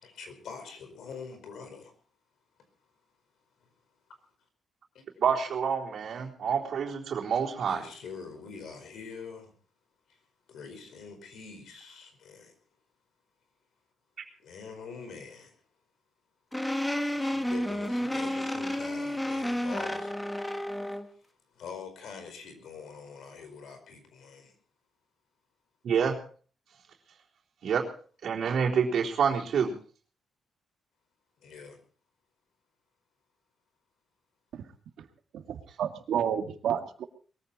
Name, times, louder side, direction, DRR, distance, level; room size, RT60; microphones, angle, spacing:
voice 1, 0.0-1.9 4.9-5.0 7.7-9.5 10.5-12.5 14.4-15.5 17.1-20.1 21.6-24.5 31.4-31.8, left 5 dB, 70° left, 7 dB, 4.8 m, -44 dB
voice 2, 5.2-7.8 25.8-26.2 27.6-27.8 28.2-29.7, right 7 dB, 55° right, -2 dB, 3.9 m, -27 dB
sound 1, 16.5-21.1, left 1 dB, 5° left, 1.1 m, -31 dB
voice 3, 35.3-37.0, right 9 dB, 80° right, 6 dB, 2.0 m, -31 dB
21.5 x 15.0 x 4.2 m, 0.43 s
wide cardioid pair, 175°, 0 cm